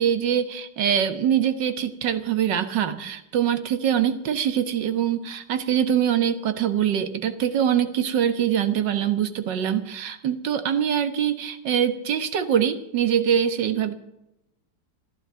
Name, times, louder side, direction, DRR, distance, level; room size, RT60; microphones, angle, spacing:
voice 1, 0.0-13.9, right 9 dB, 80° right, 10 dB, 1.9 m, -23 dB
15.0 x 12.0 x 6.8 m, 0.84 s
omnidirectional pair, 1.9 m